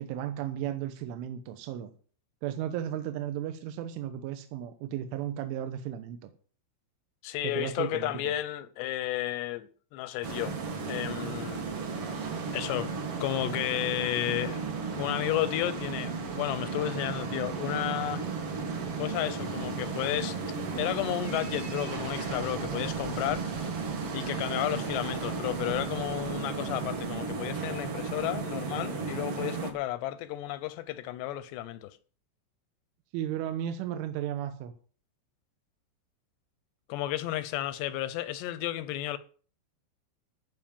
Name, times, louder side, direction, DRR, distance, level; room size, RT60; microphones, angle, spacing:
voice 1, 0.0-1.9 2.4-6.3 7.5-8.3 33.1-34.7, right 10 dB, 80° right, 3.5 m, -34 dB
voice 2, 7.2-10.6 10.9-11.6 12.5-12.9 13.2-14.6 15.0-18.2 19.0-20.4 20.8-23.5 24.1-32.0 36.9-39.2, left 14 dB, 80° left, 2.5 m, -32 dB
sound 1, 10.2-29.7, right 4 dB, 50° right, 1.8 m, -34 dB
15.0 x 5.9 x 8.9 m
omnidirectional pair, 5.6 m